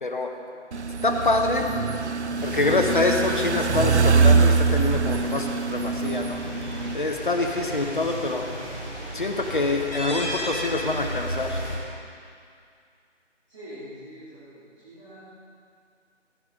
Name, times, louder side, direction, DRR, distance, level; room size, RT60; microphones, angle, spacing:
voice 1, 0.0-0.3 1.0-1.7 2.4-6.4 6.9-8.4 9.1-11.6, left 3 dB, 45° left, 3 dB, 1.0 m, -25 dB
sound 1, 0.7-6.9, right 4 dB, 65° right, 0.6 m, -23 dB
sound 2, 2.3-11.7, equal, 5° left, 1.4 m, -35 dB
voice 2, 13.5-15.2, equal, 25° right, -15 dB, 2.8 m, -44 dB
15.0 x 9.8 x 3.8 m, 2.3 s
figure-of-eight pair, 165°, 36 cm